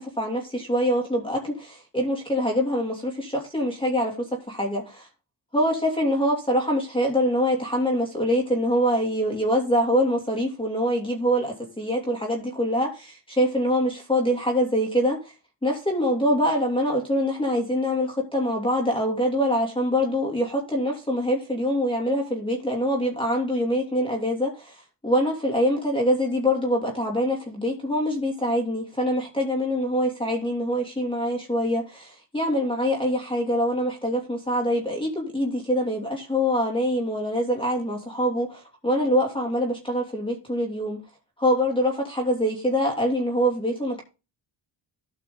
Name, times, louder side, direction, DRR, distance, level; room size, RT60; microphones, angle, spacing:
voice 1, 0.2-4.8 5.5-15.2 15.6-24.7 25.0-41.0 41.4-44.0, equal, 10° left, 2.9 m, -24 dB
13.5 x 5.8 x 4.0 m
cardioid pair, 80°, 45 cm